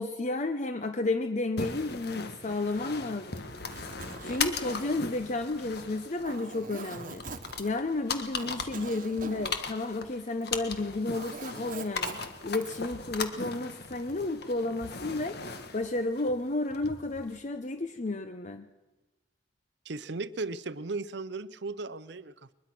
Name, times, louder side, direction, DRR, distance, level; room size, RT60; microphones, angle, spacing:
voice 1, 0.0-3.5 4.2-7.2 7.6-15.4 15.7-18.7, left 2 dB, 40° left, 8 dB, 0.8 m, -32 dB
sound 1, 1.6-17.4, left 5 dB, 60° left, 1.7 m, -38 dB
Zipper (clothing), 3.4-10.6 10.8-13.0, right 4 dB, 45° right, 1.3 m, -45 dB
voice 2, 19.9-22.5, right 3 dB, 65° right, 16 dB, 0.8 m, -36 dB
22.5 x 21.5 x 6.1 m, 1.1 s
head